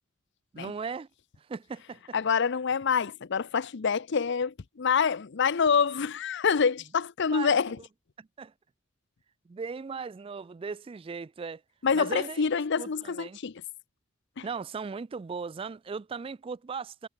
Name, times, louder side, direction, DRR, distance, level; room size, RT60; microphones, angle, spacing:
voice 1, 0.5-1.1 1.4-2.2 7.3-7.6 8.2-8.5 9.5-11.6 11.9-12.4 12.8-13.4 14.4-17.1, right 5 dB, 25° right, 0.3 m, -37 dB
voice 2, 2.1-7.8 11.8-13.6 14.4-14.5, left 6 dB, 60° left, 0.6 m, -26 dB
head